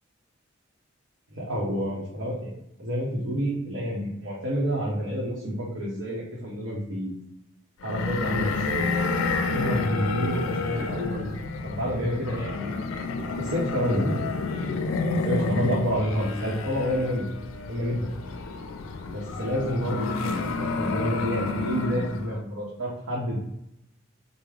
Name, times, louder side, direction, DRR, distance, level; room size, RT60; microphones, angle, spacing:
voice 1, 1.3-2.5 2.8-7.1 7.8-9.2 9.5-11.3 11.6-12.8 13.4-14.2 15.2-17.3 17.6-18.1 19.1-20.4 20.7-23.4, equal, 80° right, -6 dB, 0.8 m, -28 dB
sound 1, 7.8-22.3, left 4 dB, 85° left, 0.4 m, -30 dB
3.4 x 2.0 x 3.4 m, 0.82 s
head